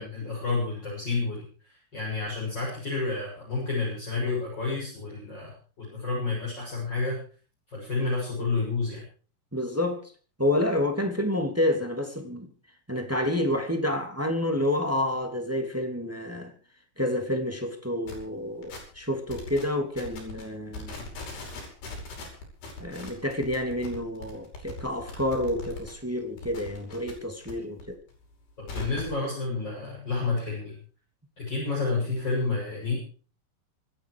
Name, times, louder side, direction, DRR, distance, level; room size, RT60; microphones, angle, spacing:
voice 1, 0.0-1.5 1.9-7.2 7.7-9.0 28.6-30.7 31.4-32.9, left 3 dB, 25° left, 8.0 m, -30 dB
voice 2, 9.5-10.0 10.4-12.5 12.9-16.5 17.0-20.9 22.8-28.0, left 1 dB, 5° right, 1.8 m, -29 dB
sound 1, 18.1-18.2 18.6-19.0 19.3-19.6 20.0-20.4 20.7-25.9 26.2-27.5 27.8-29.2, left 3 dB, 75° left, 7.4 m, -40 dB
26.0 x 10.0 x 4.9 m
omnidirectional pair, 4.6 m